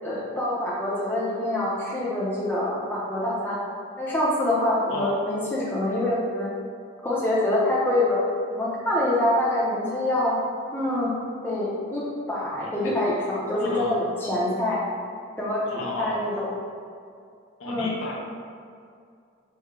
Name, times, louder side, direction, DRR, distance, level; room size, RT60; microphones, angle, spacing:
voice 1, 0.0-3.6 4.0-6.5 7.0-8.2 8.5-10.4 10.7-11.1 11.4-14.8 15.4-16.5 17.7-17.9, left 1 dB, 10° left, -7 dB, 0.7 m, -25 dB
voice 2, 12.5-12.9 13.6-13.9 15.7-16.1 17.6-18.1, left 1 dB, 90° left, -3 dB, 0.7 m, -33 dB
4.2 x 2.3 x 3.7 m, 2.3 s
head